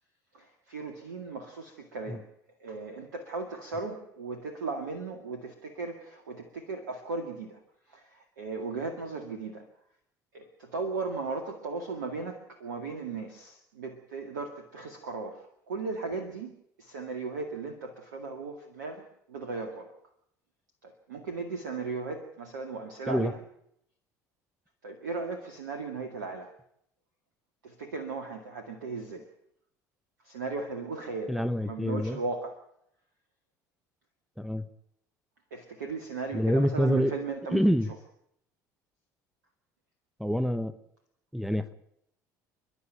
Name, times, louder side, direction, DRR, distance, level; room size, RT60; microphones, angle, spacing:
voice 1, 0.3-2.3 2.6-7.6 7.9-9.7 10.3-19.9 20.8-23.4 24.8-26.5 27.6-29.3 30.2-32.6 35.5-37.8, right 4 dB, 75° right, 6 dB, 2.1 m, -37 dB
voice 2, 31.3-32.2 34.4-34.7 36.3-37.1 37.5-37.9 40.2-40.7 41.3-41.7, equal, ahead, 10 dB, 1.2 m, -26 dB
29.0 x 11.5 x 9.0 m, 0.74 s
figure-of-eight pair, 65°, 10 cm